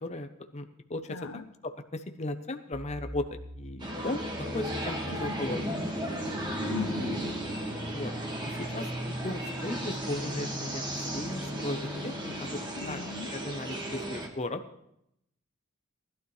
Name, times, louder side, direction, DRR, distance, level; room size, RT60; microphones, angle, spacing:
voice 1, 0.0-3.3 3.6-5.6 7.9-8.1 8.7-12.6 12.8-13.0 13.3-14.6, left 2 dB, 30° left, 7 dB, 0.8 m, -36 dB
voice 2, 1.1-1.5 5.1-5.3 6.6-7.2 12.8-13.3, left 5 dB, 90° left, 9 dB, 0.8 m, -38 dB
sound 1, 2.7-12.5, equal, 65° right, 1.7 m, -42 dB
sound 2, 3.8-14.3, equal, 20° right, 1.8 m, -35 dB
19.5 x 12.0 x 3.2 m, 0.77 s
head